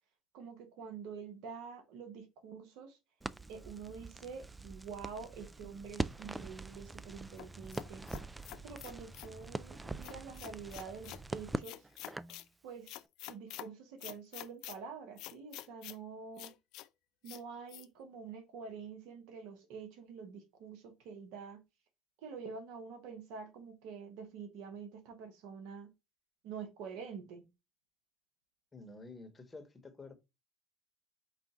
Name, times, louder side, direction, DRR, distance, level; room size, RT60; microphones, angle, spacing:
voice 1, 0.3-3.0 3.5-8.0 8.6-11.9 12.6-16.5 17.2-21.6 22.2-25.9 26.4-27.5, right 5 dB, 70° right, 1.3 m, -47 dB
Crackle, 3.2-12.4, right 2 dB, 10° right, 0.3 m, -43 dB
sound 1, 7.4-9.3 10.0-11.2 11.6-12.5 12.9-13.7 14.0-14.8 15.2-16.0 16.4-16.9 17.3-17.4 17.7-17.9, left 15 dB, 70° left, 0.4 m, -47 dB
voice 2, 28.7-30.1, left 3 dB, 20° left, 1.2 m, -50 dB
4.9 x 2.4 x 4.2 m
supercardioid pair, 85°, 0 cm